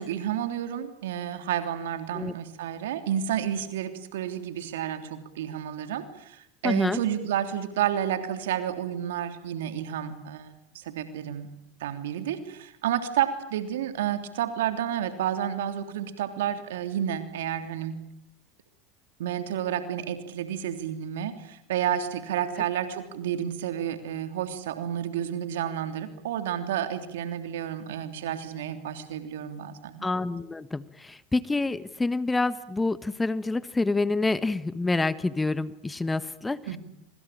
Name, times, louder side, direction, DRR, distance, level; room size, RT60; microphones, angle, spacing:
voice 1, 0.0-11.5 11.8-18.0 19.2-30.2 36.7-36.8, right 10 dB, 75° right, 8 dB, 3.2 m, -30 dB
voice 2, 6.6-7.0 30.0-36.8, left 3 dB, 15° left, 15 dB, 1.3 m, -27 dB
25.5 x 25.0 x 8.8 m, 0.76 s
hypercardioid pair, 85°, 0 cm